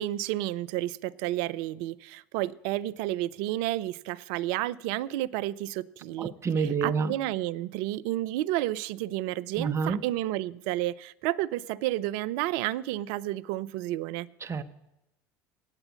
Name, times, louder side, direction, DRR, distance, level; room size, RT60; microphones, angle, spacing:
voice 1, 0.0-6.3 6.8-14.3, right 15 dB, 60° right, 18 dB, 0.4 m, -31 dB
voice 2, 6.2-7.1 9.6-10.0 14.4-14.6, right 5 dB, 25° right, 7 dB, 0.8 m, -28 dB
9.0 x 7.9 x 8.2 m, 0.93 s
hypercardioid pair, 75°, 12 cm